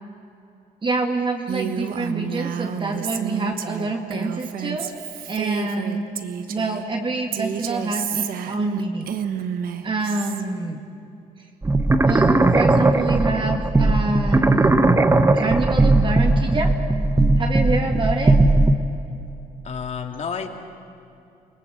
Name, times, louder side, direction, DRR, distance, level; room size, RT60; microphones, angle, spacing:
voice 1, 0.8-4.9 5.3-6.0 6.5-9.2 9.8-10.8 12.0-14.8 15.3-16.7 17.3-18.4, right 3 dB, 35° right, 2 dB, 2.3 m, -26 dB
Female speech woman speaking, 1.5-6.9 7.3-10.4, right 8 dB, 70° right, 1.4 m, -30 dB
sound 1, 11.6-18.8, right 2 dB, 15° right, 1.1 m, -18 dB
voice 2, 19.6-20.5, left 6 dB, 45° left, 4 dB, 2.5 m, -31 dB
29.0 x 19.5 x 7.9 m, 2.6 s
cardioid pair, 95°, 15 cm